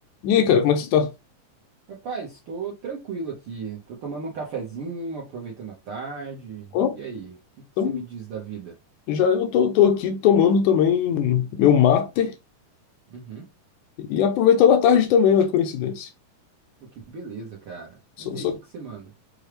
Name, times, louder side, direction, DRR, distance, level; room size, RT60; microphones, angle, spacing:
voice 1, 0.2-1.1 6.7-6.9 7.8-8.0 9.1-12.3 14.0-16.1 18.3-18.5, left 8 dB, 80° left, 2.0 m, -19 dB
voice 2, 1.9-8.8 13.1-13.5 16.8-19.1, right 5 dB, 65° right, 1.3 m, -36 dB
6.2 x 2.4 x 3.3 m
omnidirectional pair, 3.8 m